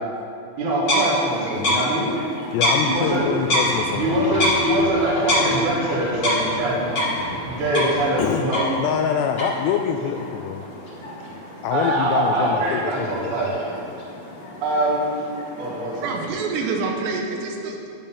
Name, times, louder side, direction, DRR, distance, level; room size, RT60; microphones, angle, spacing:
voice 1, 0.6-2.1 2.8-3.2 3.9-6.9 7.4-8.6 11.7-13.5 14.6-15.1 15.6-15.9, right 1 dB, 55° right, -5 dB, 2.5 m, -23 dB
sound 1, 0.8-16.3, left 1 dB, 40° left, 1.5 m, -27 dB
voice 2, 2.5-5.0 8.2-8.5 8.8-10.6 11.6-13.5, left 8 dB, 85° left, 5 dB, 2.5 m, -26 dB
sound 2, 3.0-8.1, left 1 dB, 65° left, 2.4 m, -37 dB
voice 3, 16.0-17.9, right 4 dB, 75° right, 2 dB, 2.9 m, -27 dB
11.5 x 5.3 x 7.3 m, 2.8 s
omnidirectional pair, 5.2 m